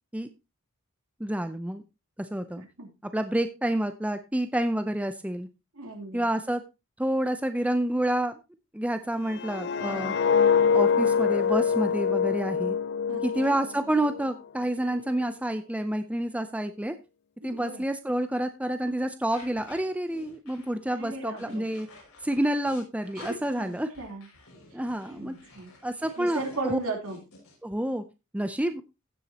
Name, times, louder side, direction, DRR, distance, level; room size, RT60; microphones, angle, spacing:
voice 1, 1.2-1.8 2.2-2.6 3.1-5.5 6.1-6.6 7.0-8.4 8.7-10.1 10.7-12.8 13.2-17.0 17.4-21.9 22.2-23.9 24.7-25.3 25.8-26.8 27.6-28.0 28.3-28.8, right 1 dB, 5° right, 9 dB, 0.6 m, -28 dB
voice 2, 2.6-2.9 5.7-6.3 13.1-13.6 17.4-17.8 20.9-21.6 23.1-23.7 24.0-24.3 25.1-25.7 26.2-27.2, right 2 dB, 75° right, 1 dB, 3.4 m, -36 dB
sound 1, 9.3-14.3 14.7-15.0, left 6 dB, 50° left, 0.4 m, -25 dB
sound 2, 19.3-27.5, left 3 dB, 85° left, 6.1 m, -51 dB
15.5 x 7.2 x 2.9 m, 0.26 s
head